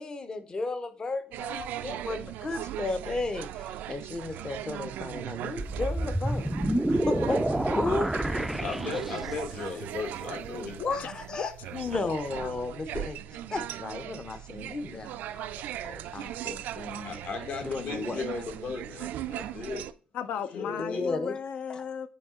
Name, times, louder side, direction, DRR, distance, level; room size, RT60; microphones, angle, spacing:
voice 1, 0.0-6.5 7.1-8.1 10.8-15.5 15.8-17.2 17.6-18.2 20.8-21.3 21.7-21.9, left 3 dB, 25° left, 0.6 m, -34 dB
sound 1, 1.3-19.9, right 12 dB, 90° right, 0.3 m, -38 dB
sound 2, 5.6-9.5, right 1 dB, 5° right, 0.3 m, -28 dB
voice 2, 8.6-10.8 17.0-19.8 20.5-21.2, left 4 dB, 55° left, 1.4 m, -36 dB
voice 3, 10.8-11.1 11.4-11.7 12.0-12.5 20.1-22.1, left 7 dB, 75° left, 0.6 m, -36 dB
9.1 x 3.1 x 3.6 m
cardioid pair, 150°, 3 cm